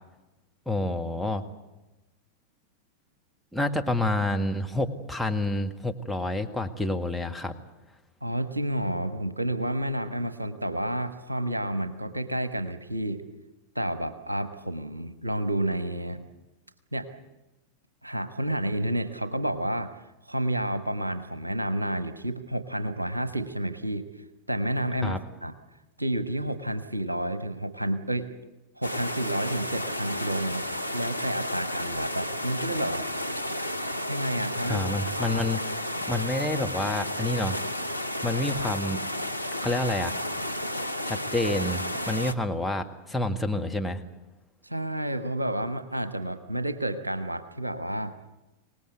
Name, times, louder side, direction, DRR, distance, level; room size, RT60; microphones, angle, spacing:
voice 1, 0.7-1.4 3.5-7.6 25.0-25.2 34.7-37.6 38.2-39.0 39.6-40.2 41.0-44.0, left 1 dB, ahead, 2 dB, 1.8 m, -28 dB
voice 2, 8.2-13.2 13.7-16.2 16.9-17.1 18.0-19.9 20.3-24.1 24.5-25.5 26.0-28.3 28.8-30.6 30.9-33.1 34.1-35.4 44.6-48.2, right 1 dB, 85° right, 10 dB, 1.2 m, -30 dB
sound 1, 28.8-42.3, left 1 dB, 90° left, 0.8 m, -32 dB
25.0 x 19.0 x 8.1 m, 1.1 s
figure-of-eight pair, 90°, 0 cm